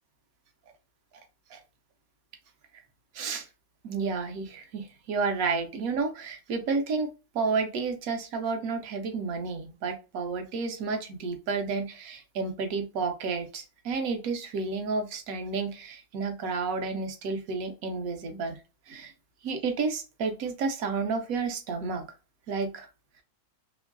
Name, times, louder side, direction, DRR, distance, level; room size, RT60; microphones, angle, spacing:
voice 1, 3.1-3.5 3.8-7.1 7.3-18.6 18.9-19.1 19.4-22.1 22.5-22.9, right 4 dB, 75° right, 6 dB, 1.1 m, -31 dB
3.0 x 2.6 x 2.5 m, 0.32 s
omnidirectional pair, 1.5 m